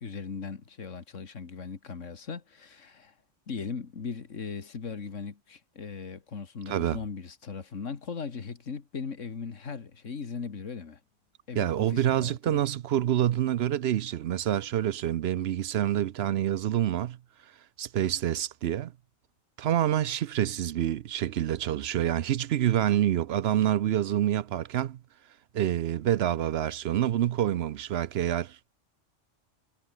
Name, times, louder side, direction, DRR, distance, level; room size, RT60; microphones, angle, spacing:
voice 1, 0.0-3.1 3.5-11.0 11.5-12.6, left 5 dB, 85° left, 2.2 m, -38 dB
voice 2, 6.7-7.0 11.6-17.2 17.8-18.9 19.6-25.0 25.5-28.7, right 11 dB, 65° right, 0.8 m, -27 dB
omnidirectional pair, 1.2 m